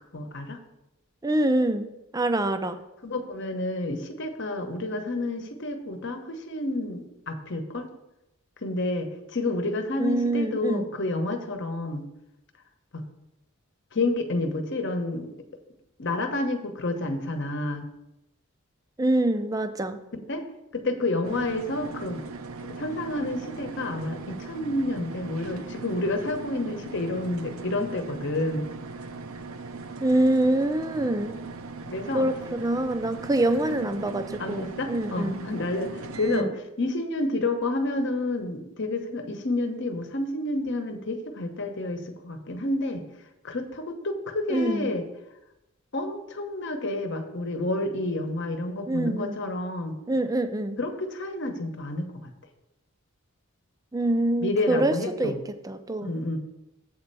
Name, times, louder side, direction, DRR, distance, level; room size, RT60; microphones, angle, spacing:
voice 1, 0.1-0.6 3.0-7.9 8.6-12.1 12.9-13.0 13.9-15.3 16.0-17.9 20.3-20.4 20.7-22.3 22.6-28.6 31.9-32.3 34.4-36.5 36.8-43.0 43.4-45.1 45.9-50.0 50.8-52.3 54.4-55.4 56.0-56.4, left 2 dB, 55° left, 6 dB, 1.0 m, -29 dB
voice 2, 1.2-2.8 10.0-10.9 19.0-20.0 30.0-31.4 32.1-35.4 36.3-36.5 44.5-44.9 48.9-49.4 50.1-50.8 53.9-55.4 55.6-56.1, right 1 dB, 15° right, 9 dB, 0.4 m, -25 dB
sound 1, 21.2-36.4, right 4 dB, 80° right, 0.7 m, -39 dB
8.0 x 4.3 x 6.8 m, 0.91 s
head